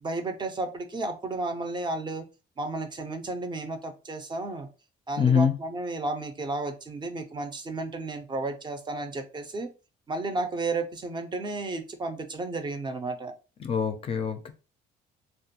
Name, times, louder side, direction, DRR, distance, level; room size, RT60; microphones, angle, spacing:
voice 1, 0.0-2.2 2.6-4.7 5.1-9.7 10.1-13.3, right 2 dB, 25° right, 0.4 m, -33 dB
voice 2, 5.2-5.5 13.6-14.5, left 6 dB, 35° left, 0.4 m, -24 dB
2.4 x 2.2 x 2.8 m
cardioid pair, 110°, 17 cm